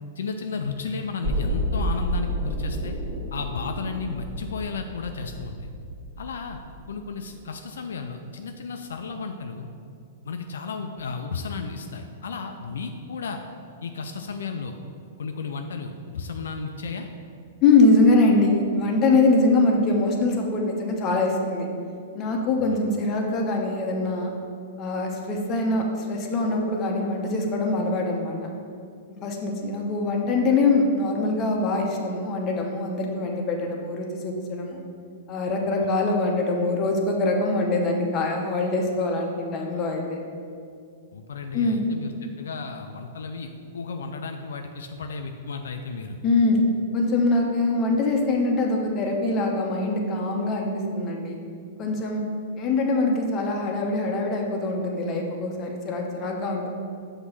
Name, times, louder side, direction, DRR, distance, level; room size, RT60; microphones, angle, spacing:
voice 1, 0.2-2.9 3.3-5.7 6.2-6.6 6.9-9.7 10.2-13.4 13.8-14.8 15.2-17.1 22.6-22.8 35.8-35.9 41.1-46.2, left 4 dB, 85° left, 5 dB, 0.4 m, -33 dB
sound 1, 1.2-7.2 7.5-7.6, equal, 40° right, 1.4 m, -30 dB
voice 2, 17.6-21.7 22.1-24.3 24.8-28.5 29.2-34.8 35.3-40.2 41.5-41.8 46.2-46.6 46.9-51.4 51.8-52.2 52.6-56.7, left 2 dB, 30° left, 0 dB, 0.9 m, -23 dB
6.2 x 2.9 x 5.5 m, 2.3 s
hypercardioid pair, 130°, 0 cm